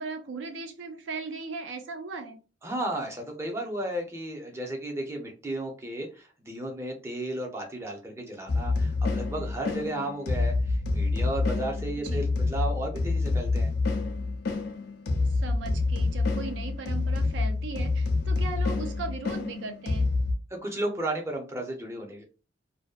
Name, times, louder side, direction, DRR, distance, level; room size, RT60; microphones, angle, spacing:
voice 1, 0.0-2.4 12.0-12.3 15.3-20.1, right 4 dB, 75° right, 7 dB, 0.4 m, -38 dB
voice 2, 2.6-13.7 20.5-22.2, right 1 dB, 15° right, 1 dB, 0.6 m, -34 dB
sound 1, 8.5-20.3, left 3 dB, 60° left, 0.5 m, -27 dB
2.6 x 2.2 x 2.3 m, 0.35 s
head